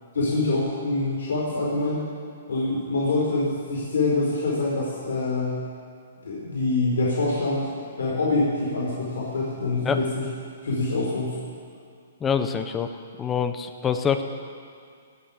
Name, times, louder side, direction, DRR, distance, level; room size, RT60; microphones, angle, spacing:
voice 1, 0.1-2.0 2.5-5.6 6.2-7.7 8.0-10.2 10.6-11.3, left 2 dB, 85° left, -5 dB, 5.0 m, -25 dB
voice 2, 12.2-12.9 13.2-14.2, left 7 dB, 10° left, 8 dB, 0.8 m, -25 dB
17.5 x 9.3 x 8.7 m, 2.3 s
hypercardioid pair, 165°, 0 cm